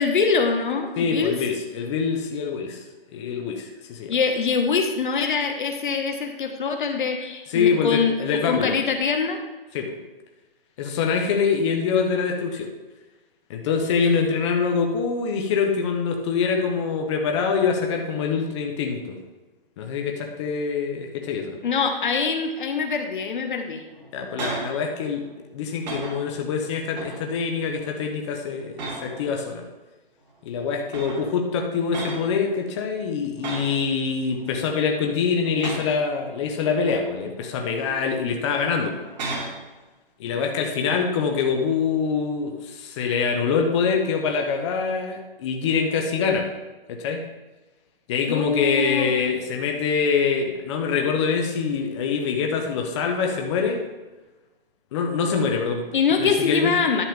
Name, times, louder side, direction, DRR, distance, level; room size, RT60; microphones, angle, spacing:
voice 1, 0.0-1.4 4.1-8.1 8.5-9.4 21.6-23.8 48.3-49.1 55.9-57.0, left 5 dB, 55° left, 5 dB, 1.0 m, -24 dB
voice 2, 1.0-2.8 3.1-4.1 7.5-8.8 9.7-9.9 10.8-12.7 13.5-19.2 19.8-21.6 24.1-25.2 25.5-29.6 30.4-39.0 40.2-46.5 46.9-47.2 48.1-53.8 54.9-55.9 56.2-56.8, left 5 dB, 30° left, 2 dB, 1.0 m, -24 dB
sound 1, 23.9-24.8 25.2-25.4 25.8-26.4 26.9-27.4 27.8-28.1 28.7-29.3 30.3-30.4 30.9-31.4 31.9-32.3 33.4-33.8 34.3-34.9 35.5-36.0 36.6-37.5 37.9-38.1 38.9-39.6 43.1-43.4, right 3 dB, 45° right, 2.5 m, -34 dB
11.0 x 7.2 x 3.4 m, 1.2 s
figure-of-eight pair, 140°, 30 cm